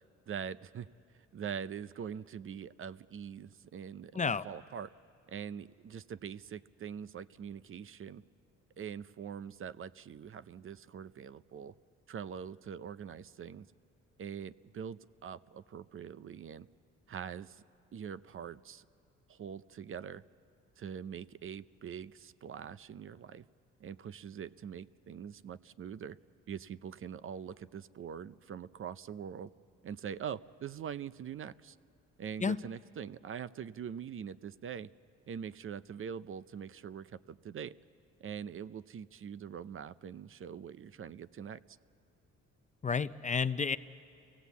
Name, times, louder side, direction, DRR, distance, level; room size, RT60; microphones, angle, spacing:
voice 1, 0.3-0.9 1.3-4.9 5.3-8.2 8.8-11.7 12.1-13.7 14.2-16.7 17.1-17.6 17.9-18.9 19.3-20.2 20.8-23.4 23.8-26.2 26.5-29.5 29.8-31.8 32.2-34.9 35.3-37.7 38.2-41.8, right 8 dB, 45° right, 16 dB, 0.5 m, -43 dB
voice 2, 42.8-43.8, left 5 dB, 25° left, 14 dB, 0.5 m, -30 dB
27.5 x 17.0 x 8.2 m, 2.5 s
cardioid pair, 90°, 30 cm